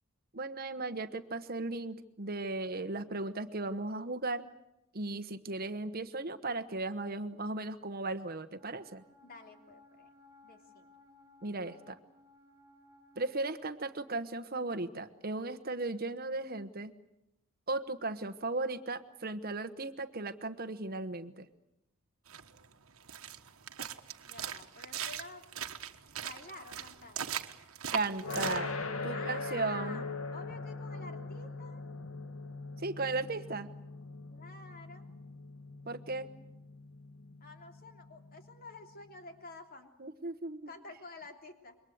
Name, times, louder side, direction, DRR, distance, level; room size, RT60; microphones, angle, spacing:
voice 1, 0.3-4.4 4.9-9.0 11.4-12.0 13.2-16.9 17.7-21.5 27.9-28.7 29.0-30.0 32.8-33.7 35.9-36.3 40.0-40.7, right 2 dB, 45° right, 10 dB, 1.2 m, -36 dB
Wind instrument woodwind instrument, 8.5-13.3, left 2 dB, 15° right, 5.0 m, -61 dB
voice 2, 9.2-10.1 10.4-10.9 24.2-25.4 26.2-27.3 29.1-30.0 30.3-31.8 34.3-35.1 37.4-39.9 40.7-41.8, left 3 dB, 45° left, 4 dB, 3.3 m, -50 dB
sound 1, 22.3-28.6, right 8 dB, 75° right, 1.4 m, -40 dB
sound 2, 28.2-39.2, left 3 dB, 80° left, 2.3 m, -42 dB
27.0 x 23.5 x 8.0 m, 0.86 s
head